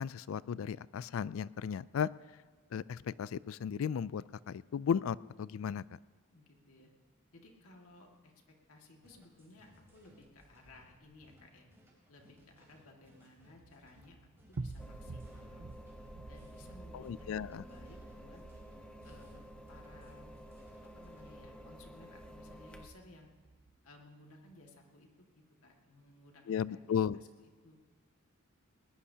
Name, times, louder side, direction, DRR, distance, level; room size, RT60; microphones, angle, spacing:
voice 1, 0.0-2.1 2.7-6.0 16.9-17.6 26.5-27.2, left 7 dB, 65° left, 20 dB, 0.3 m, -35 dB
voice 2, 6.3-6.9 7.3-11.7 12.1-14.2 14.5-15.7 16.3-18.4 19.0-20.3 21.0-23.3 23.8-25.3 25.6-26.8 27.1-27.3 27.6-27.8, left 2 dB, 90° left, 1 dB, 2.0 m, -58 dB
sound 1, 9.0-21.4, equal, 10° right, 3.8 m, -65 dB
sound 2, 13.6-23.8, right 3 dB, 70° right, 0.6 m, -50 dB
sound 3, 14.8-22.9, equal, 5° left, 0.9 m, -52 dB
20.0 x 20.0 x 2.8 m, 1.5 s
head